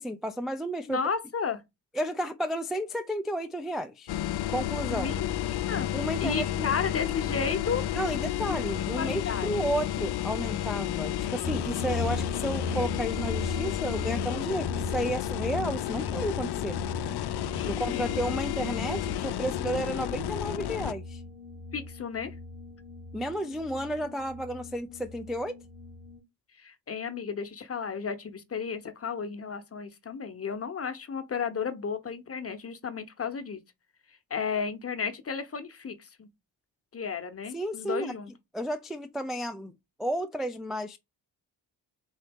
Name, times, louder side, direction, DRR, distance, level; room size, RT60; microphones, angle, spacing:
voice 1, 0.0-1.0 1.9-4.1 4.5-5.1 5.9-6.7 7.9-16.8 17.6-21.2 23.1-25.6 37.5-38.1 38.5-39.7 40.0-41.0, equal, ahead, 0.4 m, -32 dB
voice 2, 0.9-1.6 4.9-5.9 6.2-7.9 8.5-8.6 9.0-9.5 14.6-14.7 16.0-16.2 17.5-18.2 21.7-22.4 26.6-33.6 34.3-36.3 36.9-38.3, left 6 dB, 35° left, 0.8 m, -33 dB
sound 1, 4.1-20.9, left 12 dB, 65° left, 0.5 m, -32 dB
sound 2, 11.4-26.2, left 2 dB, 50° right, 2.5 m, -38 dB
3.9 x 2.7 x 3.5 m
cardioid pair, 65°, 44 cm